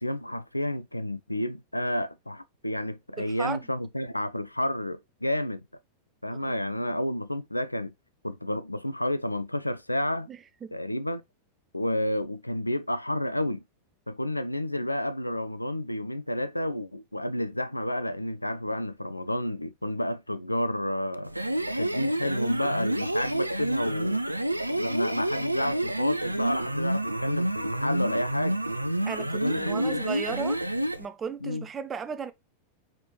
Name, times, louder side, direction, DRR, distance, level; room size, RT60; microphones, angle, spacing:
voice 1, 0.0-5.6 6.2-7.9 8.2-10.3 10.7-11.2 11.7-13.6 14.1-21.3 21.8-24.2 24.7-28.6 29.3-30.0 31.4-31.7, left 1 dB, 85° left, 0.3 m, -30 dB
voice 2, 3.2-3.6 6.4-6.6 10.3-10.7 29.0-30.6 31.0-32.3, right 6 dB, 20° right, 0.5 m, -35 dB
sound 1, 21.2-31.0, right 1 dB, 85° right, 0.3 m, -29 dB
4.1 x 3.6 x 2.9 m
figure-of-eight pair, 90°, 0 cm